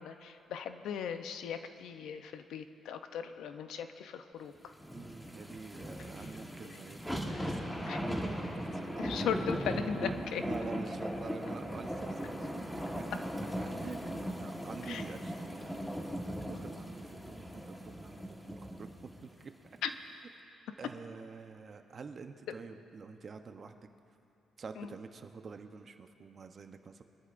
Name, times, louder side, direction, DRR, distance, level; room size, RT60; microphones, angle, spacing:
voice 1, 0.0-4.7 6.6-6.8 7.3-7.5 7.9-8.0 9.0-10.4 14.9-15.0 19.8-19.9 24.8-24.9, left 8 dB, 80° left, 8 dB, 0.6 m, -38 dB
sound 1, 4.8-19.2 19.7-19.8, equal, 5° left, 1.4 m, -38 dB
voice 2, 4.9-9.2 9.8-19.5 20.8-23.8 24.6-27.0, right 5 dB, 45° right, 7 dB, 0.8 m, -47 dB
22.5 x 13.0 x 2.6 m, 2.8 s
cardioid pair, 90°, 0 cm